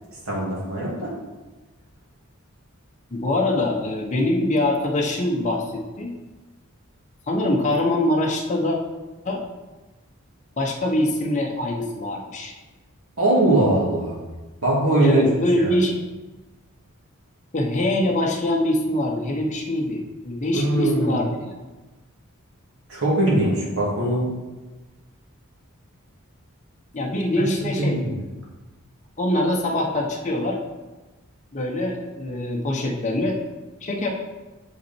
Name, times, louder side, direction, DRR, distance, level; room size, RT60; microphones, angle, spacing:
voice 1, 0.3-1.1 13.2-14.2 14.6-15.2 15.6-15.7 20.5-21.2 22.9-24.3 27.8-28.1, right 1 dB, 70° right, -5 dB, 2.6 m, -21 dB
voice 2, 3.1-6.1 7.2-8.8 9.2-9.4 10.6-12.5 15.0-16.0 17.5-21.6 26.9-28.0 29.2-30.6 31.5-33.4 33.8-34.1, left 1 dB, 35° left, -1 dB, 0.8 m, -23 dB
7.0 x 5.8 x 4.4 m, 1.2 s
head